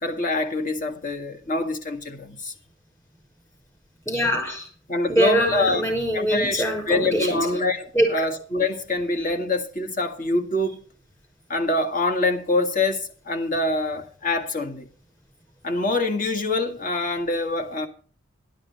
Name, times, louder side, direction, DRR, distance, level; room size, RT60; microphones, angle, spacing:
voice 1, 0.0-2.5 4.9-5.8 6.1-10.8 11.5-14.9 15.6-17.9, left 2 dB, 40° left, 1.9 m, -25 dB
voice 2, 4.1-4.7 5.1-7.4 7.9-8.1, equal, 15° left, 6.0 m, -23 dB
12.5 x 12.0 x 4.3 m
head